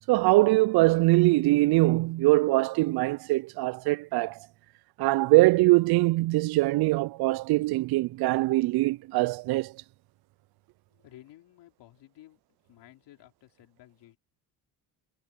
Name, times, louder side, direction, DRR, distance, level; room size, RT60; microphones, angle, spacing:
voice 1, 0.1-4.4 5.0-9.7, right 20 dB, 65° right, 0.5 m, -22 dB
voice 2, 10.9-12.4 12.7-14.2, left 14 dB, 75° left, 5.1 m, -54 dB
cardioid pair, 95°, 42 cm